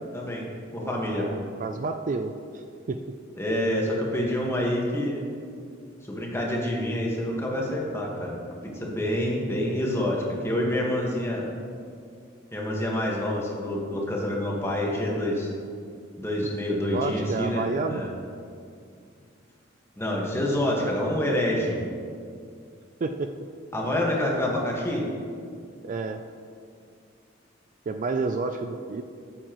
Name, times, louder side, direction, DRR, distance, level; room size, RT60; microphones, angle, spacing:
voice 1, 0.1-0.5 0.7-1.3 3.4-5.2 6.1-8.4 8.7-11.5 12.5-15.5 16.2-18.1 20.0-21.8 23.7-25.1, left 1 dB, 15° left, -2 dB, 1.4 m, -27 dB
voice 2, 1.2-3.0 16.7-18.0 23.0-23.3 25.8-26.2 27.9-29.0, right 3 dB, 40° right, 7 dB, 0.3 m, -30 dB
13.5 x 7.3 x 3.0 m, 2.3 s
head